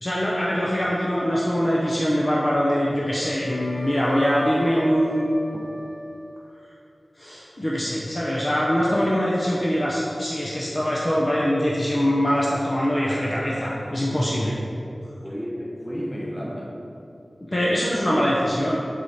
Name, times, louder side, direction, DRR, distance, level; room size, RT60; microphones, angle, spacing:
voice 1, 0.0-5.4 7.2-14.6 17.4-18.8, equal, 35° left, -5 dB, 0.7 m, -23 dB
Wind instrument woodwind instrument, 2.5-6.6, equal, 65° left, 1.1 m, -37 dB
voice 2, 15.2-16.8 17.6-18.4, equal, 5° left, -3 dB, 0.9 m, -33 dB
6.3 x 4.9 x 4.2 m, 2.7 s
wide cardioid pair, 75°, 0 cm